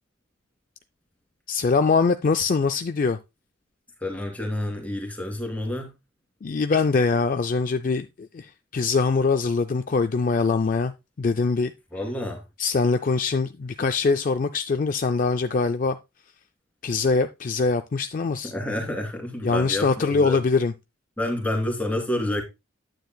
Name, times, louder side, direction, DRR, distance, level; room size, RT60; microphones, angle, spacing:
voice 1, 1.5-3.2 6.4-10.9 11.2-11.7 12.6-16.0 16.8-18.5 19.4-20.7, left 4 dB, 40° left, 0.4 m, -23 dB
voice 2, 4.0-5.9 11.9-12.4 18.4-20.4 21.2-22.4, left 1 dB, 5° left, 2.1 m, -28 dB
9.2 x 9.0 x 2.2 m
head